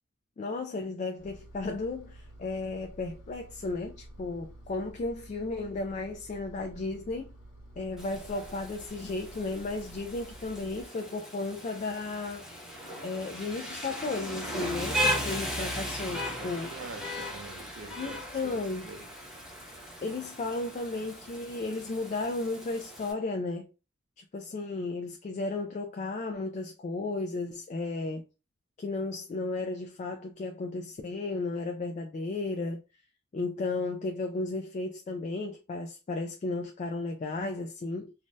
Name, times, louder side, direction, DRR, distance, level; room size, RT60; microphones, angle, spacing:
voice 1, 0.4-7.3 7.8-12.5 13.0-16.7 18.0-18.9 20.0-23.7 24.2-28.2 28.8-32.8 33.3-38.1, left 3 dB, 35° left, 0.3 m, -34 dB
Engine, 1.2-10.8, right 1 dB, 80° left, 1.0 m, -50 dB
Rain, 8.0-23.1, equal, 5° right, 0.7 m, -37 dB
voice 2, 16.2-19.1, right 4 dB, 70° right, 0.5 m, -46 dB
3.2 x 2.1 x 2.6 m
head